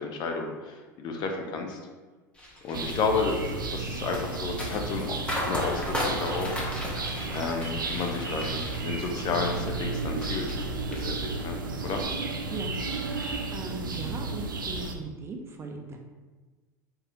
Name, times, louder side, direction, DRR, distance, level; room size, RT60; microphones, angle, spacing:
voice 1, 0.0-1.8 2.6-5.2 5.4-6.6 7.3-10.4 11.0-11.6 11.8-12.0, left 4 dB, 45° left, 3 dB, 0.6 m, -31 dB
sound 1, 2.4-10.6 10.9-11.6 12.0-12.2, left 1 dB, 10° left, 1.1 m, -36 dB
sound 2, 2.7-14.9, right 3 dB, 90° right, 0.4 m, -33 dB
voice 2, 13.1-16.0, right 3 dB, 25° right, 2 dB, 0.6 m, -38 dB
3.6 x 3.0 x 3.0 m, 1.3 s
hypercardioid pair, 80°, 11 cm